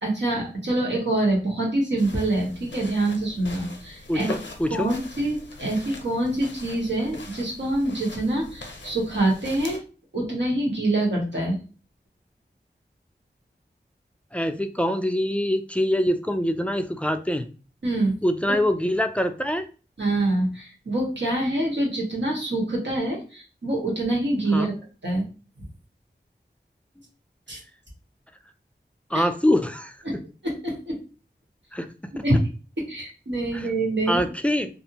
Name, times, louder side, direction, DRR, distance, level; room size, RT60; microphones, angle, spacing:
voice 1, 0.0-4.3 4.7-9.8 10.1-11.6 17.8-18.1 20.0-24.7 25.0-25.2 27.5-27.6 29.1-29.3 30.0-30.2 30.4-31.0 32.2-32.4 32.8-34.2, right 2 dB, 80° right, -3 dB, 1.1 m, -25 dB
sound 1, 2.0-9.8, left 2 dB, 90° left, 0.6 m, -42 dB
voice 2, 4.1-4.9 14.3-17.5 18.2-19.6 24.5-24.7 29.1-30.0 31.7-32.2 33.5-33.7 34.1-34.7, equal, 5° left, 7 dB, 0.3 m, -24 dB
2.5 x 2.0 x 2.8 m, 0.35 s
wide cardioid pair, 45°, 19 cm